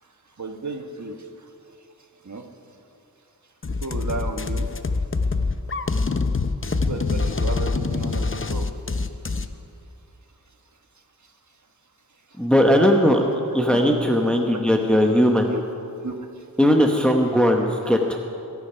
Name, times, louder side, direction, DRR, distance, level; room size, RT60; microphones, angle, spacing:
voice 1, 0.4-1.1 2.2-2.4 3.8-4.7 6.9-8.7 13.7-14.0 14.5-14.6 15.5-15.6 16.0-16.1, right 3 dB, 50° right, 5 dB, 1.3 m, -32 dB
sound 1, 3.6-9.5, left 4 dB, 35° left, 0.7 m, -25 dB
voice 2, 12.4-13.2 13.5-15.5 16.6-18.2, equal, 5° left, 2 dB, 1.0 m, -18 dB
21.0 x 8.4 x 5.7 m, 2.7 s
wide cardioid pair, 50°, 37 cm